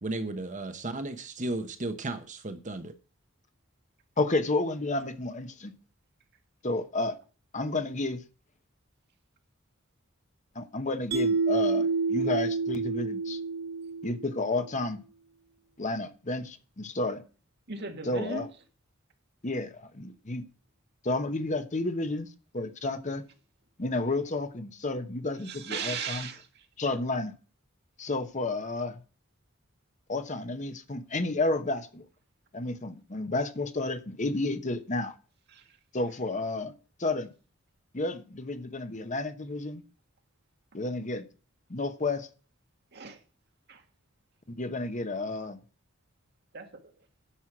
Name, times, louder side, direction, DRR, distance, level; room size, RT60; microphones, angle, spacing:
voice 1, 0.0-2.9, right 2 dB, 40° right, 1.0 m, -34 dB
voice 2, 4.2-5.7 6.6-7.2 7.5-8.2 10.5-13.4 14.0-15.0 15.8-17.2 18.1-18.5 19.4-20.4 21.0-22.3 22.5-23.2 23.8-26.3 26.8-27.3 28.0-29.0 30.1-32.0 32.5-35.1 35.9-36.7 37.0-37.3 37.9-39.8 40.7-41.2 41.7-42.3 44.5-45.6, left 2 dB, 35° left, 1.0 m, -31 dB
Mallet percussion, 11.1-14.4, right 4 dB, 85° right, 2.7 m, -28 dB
voice 3, 17.7-18.5 25.4-26.7 35.5-35.8 42.9-43.2 43.7-43.8 46.5-47.0, right 5 dB, 55° right, 1.8 m, -38 dB
10.0 x 6.3 x 6.0 m
head